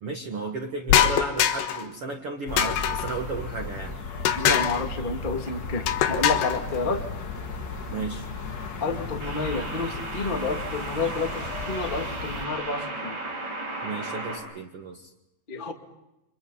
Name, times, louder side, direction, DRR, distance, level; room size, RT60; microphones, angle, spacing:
voice 1, 0.0-4.0 6.9-7.0 7.9-8.3 13.8-15.1, right 3 dB, 50° right, 2 dB, 1.9 m, -34 dB
sound 1, 0.9-1.9 2.6-3.2 4.3-4.8 5.9-6.6, left 10 dB, 80° left, 3.5 m, -23 dB
sound 2, 2.5-12.4, left 3 dB, 60° left, 0.9 m, -35 dB
voice 2, 4.4-7.0 8.8-13.2 15.5-15.7, left 3 dB, 20° left, 3 dB, 1.3 m, -30 dB
sound 3, 5.2-5.6 9.2-14.4, right 2 dB, 80° right, 9.1 m, -35 dB
29.5 x 26.0 x 5.6 m, 0.92 s
omnidirectional pair, 4.9 m